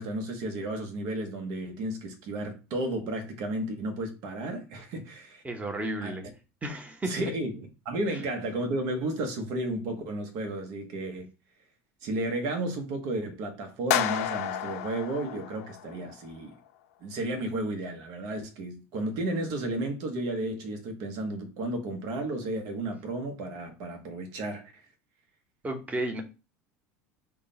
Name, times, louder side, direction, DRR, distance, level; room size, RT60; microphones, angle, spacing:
voice 1, 0.0-5.4 6.0-6.1 7.1-11.3 12.0-16.5 17.0-24.8, right 1 dB, 60° right, 1.1 m, -33 dB
voice 2, 5.4-6.3 6.6-7.3 8.1-8.2 25.6-26.2, right 1 dB, 15° right, 1.0 m, -33 dB
sound 1, 13.9-16.1, left 11 dB, 75° left, 0.7 m, -31 dB
3.6 x 2.3 x 3.9 m
hypercardioid pair, 85°, 8 cm